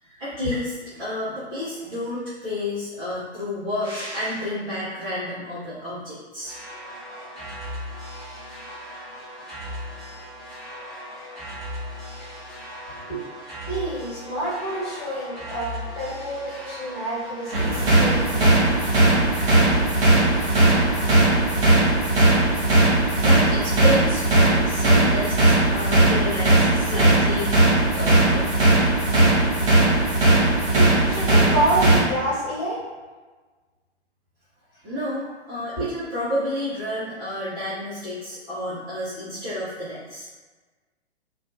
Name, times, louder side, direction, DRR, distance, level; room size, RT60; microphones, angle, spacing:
voice 1, 0.2-6.5 22.9-27.5 27.9-28.5 34.8-40.3, left 1 dB, 15° right, -14 dB, 0.4 m, -30 dB
sound 1, 6.4-23.3, equal, ahead, 0.8 m, -38 dB
voice 2, 13.6-18.7 30.7-32.8 35.8-35.9, right 1 dB, 35° left, -9 dB, 1.3 m, -28 dB
sound 2, 17.5-32.0, right 2 dB, 55° right, 0.8 m, -18 dB
2.5 x 2.2 x 2.3 m, 1.3 s
figure-of-eight pair, 115°, 34 cm